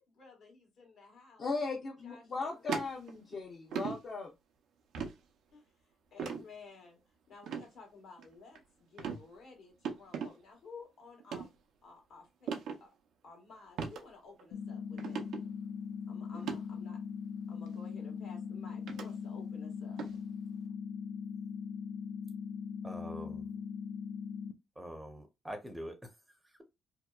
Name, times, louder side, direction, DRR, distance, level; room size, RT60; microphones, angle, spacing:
voice 1, 0.0-1.7 2.0-2.7 5.5-7.0 7.3-11.5 11.8-12.9 13.2-15.2 16.1-17.0 17.5-20.0, left 4 dB, 70° left, 1.1 m, -54 dB
voice 2, 1.4-4.3, left 3 dB, 45° left, 0.6 m, -37 dB
sound 1, 2.7-3.3 3.7-4.0 4.9-5.2 6.2-6.4 7.4-7.6 8.2-8.6 9.0-9.2 9.8-10.3 11.2-11.5 12.5-12.8 13.8-14.0 14.4-14.5 15.0-15.4 16.3-16.6 17.7-17.8 18.9-19.1 20.0-20.2, right 6 dB, 80° right, 0.5 m, -37 dB
sound 2, 14.5-24.5, left 6 dB, 90° left, 0.3 m, -40 dB
voice 3, 22.8-23.4 24.8-26.6, equal, 10° right, 0.6 m, -45 dB
2.7 x 2.1 x 2.2 m
cardioid pair, 90°, 0 cm